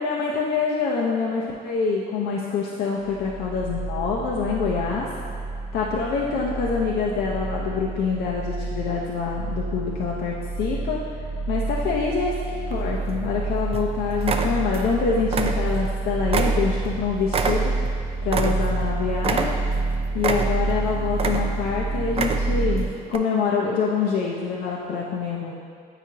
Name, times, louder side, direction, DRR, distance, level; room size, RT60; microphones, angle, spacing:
voice 1, 0.0-5.1 5.7-11.0 11.5-19.6 20.1-25.5, left 5 dB, 70° left, -3 dB, 0.6 m, -26 dB
sound 1, 3.0-22.9, right 3 dB, 55° right, 0.9 m, -28 dB
sound 2, 12.7-13.3 13.7-13.9 14.2-14.9 15.2-16.0 16.3-18.9 19.2-19.8 20.2-20.8 21.1-21.7 22.1-22.7 23.1-23.2, right 5 dB, 35° right, 0.4 m, -27 dB
8.3 x 4.9 x 2.8 m, 2.2 s
cardioid pair, 110°, 17 cm